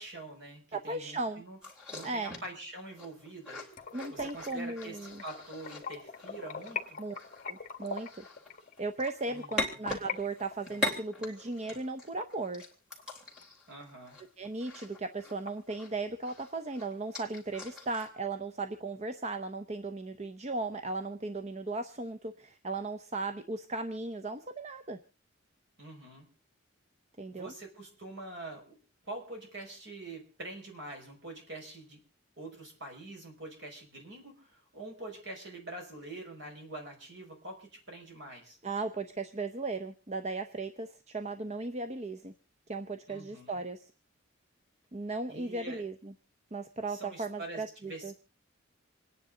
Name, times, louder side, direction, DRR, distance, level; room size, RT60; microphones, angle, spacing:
voice 1, 0.0-1.6 1.9-3.6 4.1-7.0 9.3-9.8 13.7-14.2 25.8-26.3 27.3-28.8 29.0-32.0 32.4-38.6 43.1-43.6 45.3-45.8 46.9-48.2, right 2 dB, 60° right, 2 dB, 5.6 m, -45 dB
voice 2, 0.7-1.4 2.0-2.3 3.9-5.2 7.0-7.1 7.5-8.2 8.8-12.6 14.4-25.0 27.2-27.5 38.6-42.3 42.7-43.9 44.9-46.1 46.5-48.1, right 3 dB, 35° right, 8 dB, 0.7 m, -36 dB
sound 1, 1.6-16.0 16.2-18.1, left 2 dB, 5° right, 3.3 m, -41 dB
sound 2, 3.7-10.2 10.5-13.0 13.4-13.5 13.9-14.0 14.4-14.5 14.7-15.5, left 5 dB, 40° left, 1.7 m, -42 dB
28.0 x 10.0 x 3.8 m, 0.34 s
head